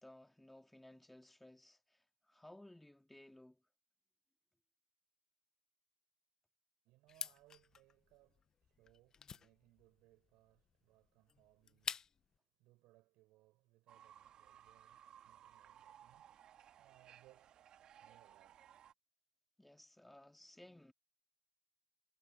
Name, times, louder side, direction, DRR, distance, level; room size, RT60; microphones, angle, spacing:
voice 1, 0.0-3.6 19.6-20.9, left 1 dB, 5° left, 2.1 m, -59 dB
voice 2, 6.8-18.8 20.2-20.3, right 19 dB, 60° right, 6.9 m, -70 dB
sound 1, 7.1-12.4, left 7 dB, 30° left, 0.6 m, -49 dB
Fowl / Bird, 13.9-18.9, right 10 dB, 40° right, 1.5 m, -61 dB
supercardioid pair, 110°, 2 cm